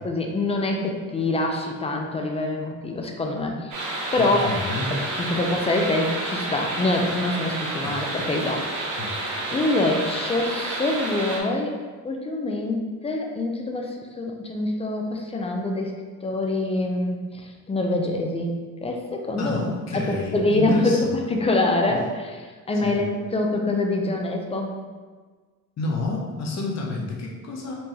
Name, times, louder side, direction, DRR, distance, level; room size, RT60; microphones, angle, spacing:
voice 1, 0.0-3.8 4.1-4.5 4.9-9.1 9.5-11.8 12.0-19.6 19.9-24.7, left 2 dB, 20° left, 2 dB, 0.4 m, -25 dB
sound 1, 3.7-11.4, right 2 dB, 75° right, 1.0 m, -30 dB
voice 2, 4.2-4.9 7.8-8.0 9.0-9.1 19.4-21.2 22.8-23.0 25.8-27.7, left 3 dB, 55° left, -2 dB, 0.9 m, -30 dB
4.4 x 3.1 x 2.7 m, 1.4 s
cardioid pair, 140°, 32 cm